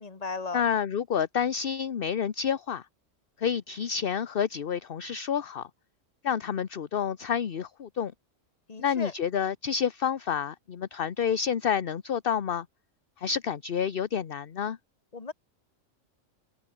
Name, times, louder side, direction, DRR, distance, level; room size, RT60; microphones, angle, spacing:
voice 1, 0.0-0.6 8.7-9.1 15.1-15.3, left 4 dB, 30° left, 1.7 m, -35 dB
voice 2, 0.5-2.9 3.4-5.7 6.2-8.1 8.8-12.7 13.2-14.8, left 7 dB, 50° left, 1.0 m, -29 dB
omnidirectional pair, 1.3 m